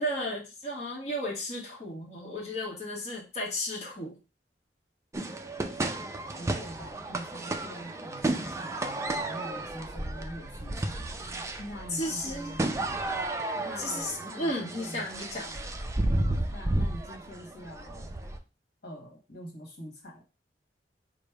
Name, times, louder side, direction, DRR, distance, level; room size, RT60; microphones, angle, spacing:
voice 1, 0.0-4.2 11.9-12.5 13.8-15.5, left 1 dB, 40° left, -4 dB, 1.2 m, -34 dB
sound 1, 5.1-18.4, right 1 dB, 15° right, 0.4 m, -33 dB
voice 2, 6.4-12.7 13.5-15.0 15.3-15.7 16.5-18.1 18.8-20.2, equal, 65° left, 0 dB, 1.3 m, -44 dB
5.1 x 2.1 x 4.6 m, 0.31 s
head